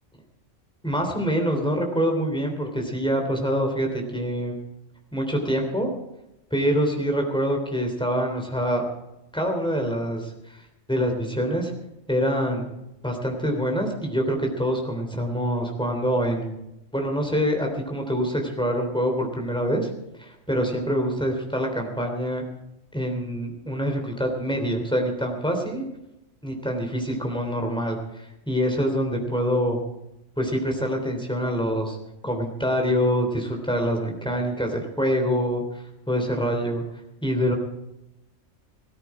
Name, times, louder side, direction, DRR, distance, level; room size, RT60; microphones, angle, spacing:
voice 1, 0.8-4.6 5.1-5.9 6.5-8.9 9.3-10.6 10.9-11.7 12.1-12.7 13.0-16.5 16.9-19.9 20.2-22.4 22.9-25.8 26.4-29.8 30.4-32.0 32.2-35.6 36.1-36.8 37.2-37.6, equal, 5° left, 2 dB, 3.3 m, -25 dB
17.0 x 13.5 x 4.9 m, 0.90 s
omnidirectional pair, 1.3 m